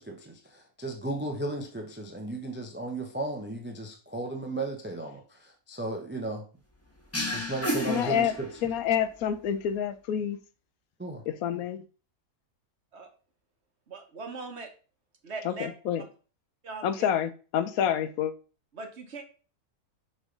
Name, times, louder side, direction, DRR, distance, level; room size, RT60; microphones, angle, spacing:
voice 1, 0.0-6.5 7.3-8.5 11.0-11.2, right 2 dB, 15° right, 3 dB, 0.4 m, -35 dB
sound 1, 7.1-8.9, equal, 10° left, 1.0 m, -32 dB
voice 2, 7.9-8.3 8.6-10.4 11.3-11.8 15.4-16.0 16.8-18.3, left 9 dB, 75° left, 12 dB, 1.0 m, -28 dB
voice 3, 13.9-14.7 15.2-15.7 16.0-16.1 16.6-17.1 18.7-19.2, right 3 dB, 50° right, 5 dB, 1.2 m, -40 dB
6.2 x 3.2 x 5.1 m, 0.37 s
omnidirectional pair, 1.6 m